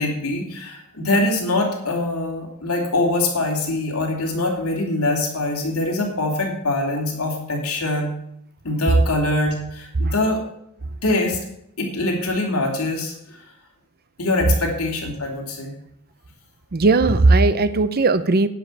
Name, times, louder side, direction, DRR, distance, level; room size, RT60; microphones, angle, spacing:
voice 1, 0.0-8.1 8.6-10.4 11.0-11.4 11.8-13.4 14.2-15.8, left 2 dB, 80° left, 0 dB, 2.7 m, -23 dB
voice 2, 16.7-18.5, right 3 dB, 45° right, 13 dB, 0.6 m, -17 dB
10.0 x 5.6 x 7.5 m, 0.75 s
head